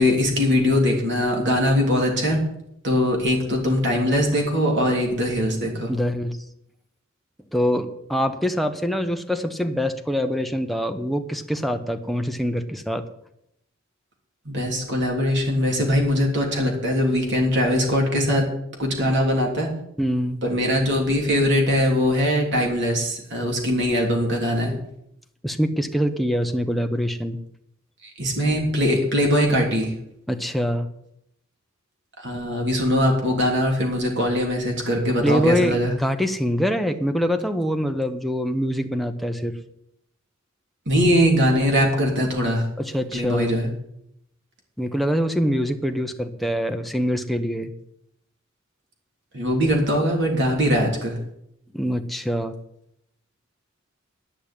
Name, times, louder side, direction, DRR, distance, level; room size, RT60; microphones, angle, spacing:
voice 1, 0.0-2.4 2.8-5.9 14.4-18.5 18.8-19.7 20.4-24.7 28.0-29.9 32.2-35.9 40.9-42.7 43.1-43.7 49.3-51.2, equal, 60° right, 0 dB, 3.3 m, -21 dB
voice 2, 5.9-6.4 7.5-13.0 20.0-20.4 25.4-27.4 30.3-30.9 35.2-39.5 42.8-43.5 44.8-47.7 51.7-52.5, equal, ahead, 5 dB, 0.8 m, -24 dB
10.0 x 6.3 x 8.7 m, 0.77 s
head